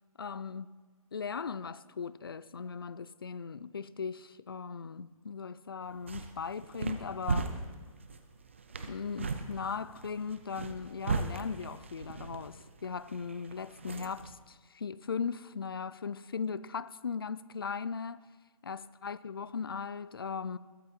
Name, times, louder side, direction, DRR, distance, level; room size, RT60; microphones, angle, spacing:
voice 1, 0.2-0.7 1.1-7.5 8.8-18.2 18.6-20.6, left 6 dB, 40° left, 0.4 m, -38 dB
sound 1, 5.8-14.3, right 4 dB, 20° right, 0.5 m, -38 dB
21.0 x 8.6 x 4.4 m
hypercardioid pair, 180°, 18 cm